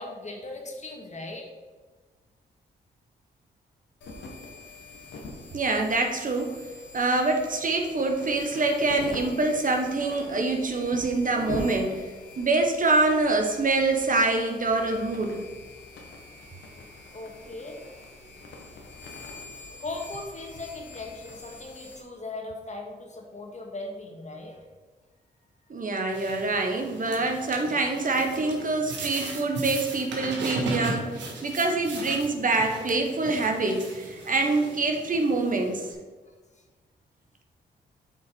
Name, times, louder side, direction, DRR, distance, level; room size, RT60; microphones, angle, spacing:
voice 1, 0.0-1.5 17.1-17.8 19.6-24.6, left 2 dB, 40° left, 1 dB, 1.8 m, -38 dB
sound 1, 4.0-22.0, left 2 dB, 80° left, 1.3 m, -43 dB
voice 2, 5.5-6.6 6.9-12.0 12.4-15.4 25.7-35.9, right 3 dB, 45° right, 3 dB, 1.3 m, -25 dB
sound 2, 26.1-35.9, right 3 dB, 80° right, 1.4 m, -37 dB
8.0 x 5.0 x 4.6 m, 1.3 s
supercardioid pair, 55°, 18 cm